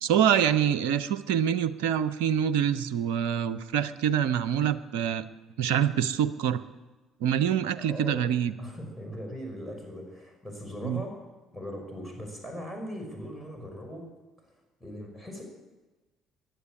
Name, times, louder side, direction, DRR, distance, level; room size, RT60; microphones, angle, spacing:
voice 1, 0.0-5.2 5.6-6.6 7.2-8.5 10.8-11.0, right 9 dB, 65° right, 16 dB, 0.6 m, -25 dB
voice 2, 7.8-8.3 8.6-11.2 11.5-14.1 14.4-14.5 14.8-15.4, equal, 5° right, 2 dB, 5.5 m, -39 dB
15.0 x 10.5 x 8.4 m, 1.2 s
figure-of-eight pair, 50°, 0 cm